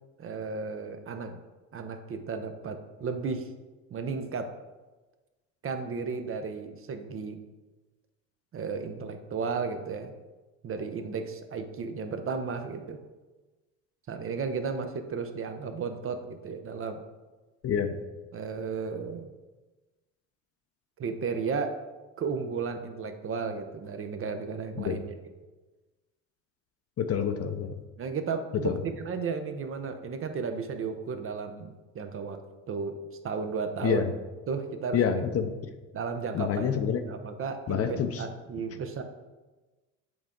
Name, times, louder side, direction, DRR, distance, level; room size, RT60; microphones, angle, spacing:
voice 1, 0.2-1.4 1.7-3.5 3.9-4.5 5.6-7.4 8.5-10.1 10.6-13.0 14.1-17.0 18.3-19.3 21.0-21.7 22.2-25.1 28.0-32.4 32.7-33.0 33.2-34.1 34.5-35.2 35.9-36.7 37.1-39.0, right 5 dB, 35° right, 7 dB, 0.6 m, -34 dB
voice 2, 17.6-17.9 24.8-25.0 27.0-27.7 28.6-28.8 33.8-34.1 34.9-35.5 36.3-37.0 37.7-38.2, left 7 dB, 40° left, 8 dB, 0.6 m, -27 dB
7.9 x 3.5 x 3.7 m, 1.2 s
supercardioid pair, 80°, 39 cm